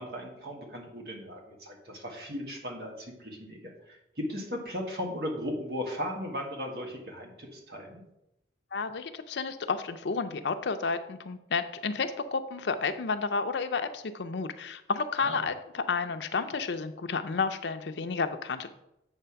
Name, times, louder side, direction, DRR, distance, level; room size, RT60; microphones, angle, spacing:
voice 1, 0.0-8.0 15.2-15.4, left 1 dB, 60° right, 0 dB, 1.6 m, -37 dB
voice 2, 8.7-18.7, left 4 dB, 80° left, 8 dB, 0.6 m, -31 dB
8.2 x 3.4 x 5.7 m, 0.85 s
head